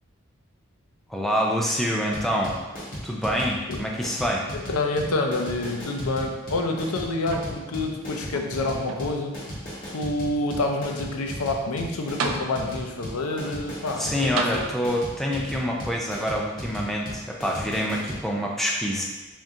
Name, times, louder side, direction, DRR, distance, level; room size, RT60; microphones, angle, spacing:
voice 1, 1.1-2.6 3.0-4.5 14.0-19.0, equal, ahead, -2 dB, 0.4 m, -26 dB
sound 1, 2.1-18.2, equal, 40° left, 1.3 m, -36 dB
voice 2, 4.5-9.4 9.9-14.6, left 2 dB, 90° left, 3 dB, 0.5 m, -28 dB
sound 2, 7.3-7.9 8.3-9.3 10.0-10.1 11.7-11.8 12.2-13.0 14.3-15.2 16.3-16.4, right 4 dB, 75° right, 0.4 m, -33 dB
3.5 x 2.7 x 3.6 m, 1.1 s
head